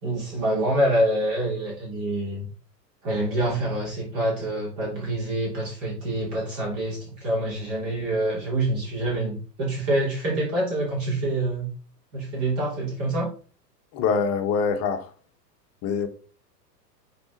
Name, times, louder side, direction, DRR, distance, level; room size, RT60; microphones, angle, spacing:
voice 1, 0.0-2.5 3.0-11.7 12.1-13.3, right 1 dB, 40° right, 2.9 m, -26 dB
voice 2, 13.9-15.0 15.8-16.1, left 5 dB, 30° left, 0.9 m, -24 dB
5.8 x 4.2 x 3.8 m
hypercardioid pair, 110°, 50 cm